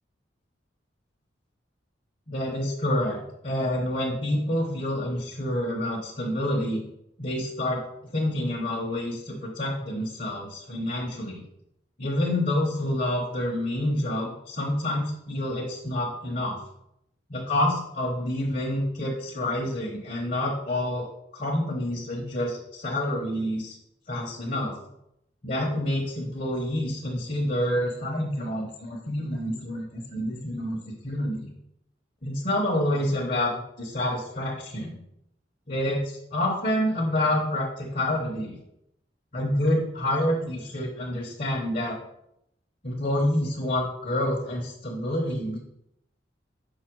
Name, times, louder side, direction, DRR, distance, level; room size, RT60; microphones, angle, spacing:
voice 1, 2.3-3.2 3.4-6.8 7.2-7.8 8.1-11.4 12.0-16.6 17.3-21.1 21.3-23.7 24.1-24.8 25.4-31.5 32.2-34.9 35.7-38.6 39.3-42.0 42.8-45.6, left 1 dB, 45° left, -3 dB, 1.1 m, -28 dB
5.6 x 4.9 x 4.6 m, 0.80 s
head